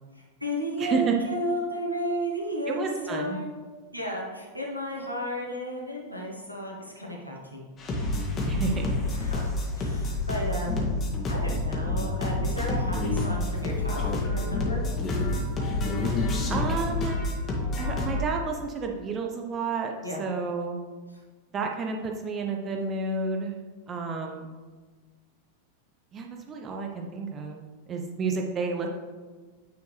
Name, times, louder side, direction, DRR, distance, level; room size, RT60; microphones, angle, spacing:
voice 1, 0.2-3.5 3.9-7.6 9.1-9.5 9.8-14.8 20.0-20.2, equal, 90° right, -2 dB, 1.1 m, -33 dB
voice 2, 0.8-1.1 2.7-3.4 8.5-8.9 16.5-17.2 17.8-19.9 20.2-20.8 21.5-23.6 23.9-24.5 26.1-27.6 27.9-28.9, right 4 dB, 25° right, 2 dB, 0.7 m, -30 dB
sound 1, 7.8-18.2, left 2 dB, 25° left, 1.5 m, -28 dB
9.2 x 4.4 x 3.2 m, 1.4 s
figure-of-eight pair, 90°, 0 cm